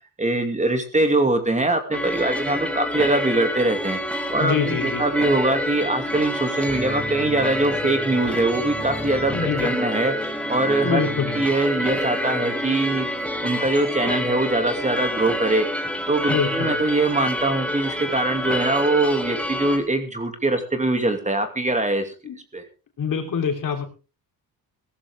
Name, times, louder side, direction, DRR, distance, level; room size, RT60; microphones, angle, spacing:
voice 1, 0.2-4.0 4.3-11.0 11.3-13.1 13.4-15.7 16.1-22.1 22.5-22.6, right 2 dB, 20° right, 7 dB, 2.6 m, -22 dB
sound 1, 1.9-19.8, left 1 dB, 5° left, 2.5 m, -27 dB
voice 2, 4.4-5.0 9.3-9.7 10.8-11.3 16.3-16.8 17.8-17.9 22.2-22.4 23.0-23.8, left 7 dB, 60° left, 5 dB, 3.7 m, -25 dB
17.0 x 14.0 x 3.6 m, 0.33 s
cardioid pair, 110°, 37 cm